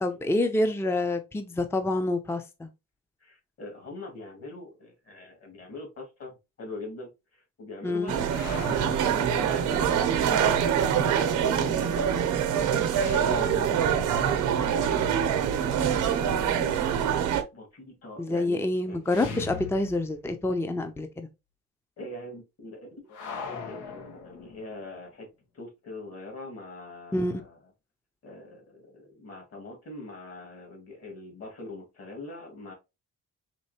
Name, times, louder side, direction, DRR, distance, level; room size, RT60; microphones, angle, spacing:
voice 1, 0.0-2.7 7.8-8.1 18.2-21.3 27.1-27.4, left 2 dB, 10° left, 0.5 m, -27 dB
voice 2, 3.2-8.3 9.1-9.8 11.0-12.3 13.0-13.7 14.5-19.0 22.0-25.3 25.5-27.6 28.2-32.7, left 2 dB, 50° left, 2.3 m, -43 dB
sound 1, 8.1-17.4, right 8 dB, 80° right, 0.8 m, -25 dB
sound 2, 8.3-10.2 12.9-15.9 19.1-20.5 20.7-20.8 23.1-24.9, left 4 dB, 90° left, 1.0 m, -41 dB
4.4 x 3.1 x 2.8 m
cardioid pair, 90°, 30 cm